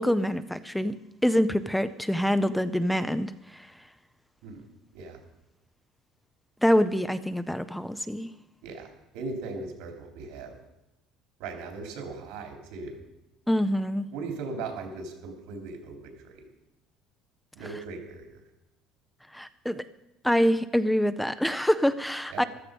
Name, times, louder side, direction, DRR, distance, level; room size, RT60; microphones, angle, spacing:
voice 1, 0.0-3.7 6.6-8.3 13.5-14.1 19.3-19.8 20.2-22.4, equal, ahead, 12 dB, 0.5 m, -25 dB
voice 2, 9.1-10.6 11.4-13.0 14.1-16.4 17.5-18.4 22.3-22.5, right 3 dB, 85° right, 3 dB, 3.6 m, -38 dB
14.5 x 13.0 x 5.4 m, 0.94 s
cardioid pair, 150°, 0 cm